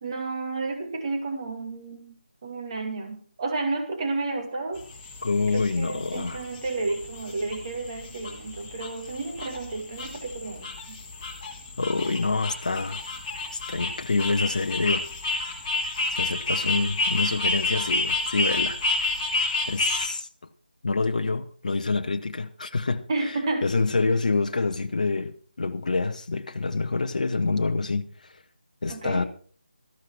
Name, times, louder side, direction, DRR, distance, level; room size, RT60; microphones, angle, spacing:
voice 1, 0.0-2.2 2.4-4.8 5.5-11.0 23.1-23.7 28.9-29.3, right 3 dB, 30° right, 2.2 m, -31 dB
sound 1, 4.7-20.1, left 2 dB, 20° left, 2.1 m, -30 dB
voice 2, 5.2-6.5 11.8-13.0 13.5-15.1 16.1-18.8 19.7-20.3 20.8-28.4 28.8-29.2, left 3 dB, 45° left, 0.8 m, -27 dB
13.5 x 11.5 x 4.5 m
figure-of-eight pair, 160°, 5 cm